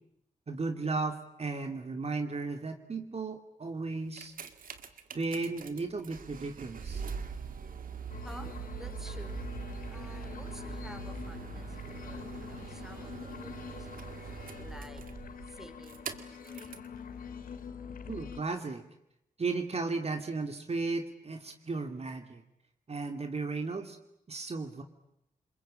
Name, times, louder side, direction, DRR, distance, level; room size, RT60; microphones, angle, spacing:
voice 1, 0.5-4.3 5.1-7.1 18.1-18.8 19.4-22.4 22.9-24.0 24.3-24.8, right 3 dB, 45° right, 5 dB, 2.6 m, -35 dB
sound 1, 3.9-16.9 17.6-17.7, right 6 dB, 75° right, 2.2 m, -42 dB
sound 2, 8.1-18.4, left 6 dB, 85° left, 2.1 m, -45 dB
voice 2, 8.2-9.4 9.9-14.2 14.6-15.0 15.5-16.9, equal, 5° right, 8 dB, 4.4 m, -51 dB
28.0 x 21.5 x 8.8 m, 0.80 s
cardioid pair, 60°, 14 cm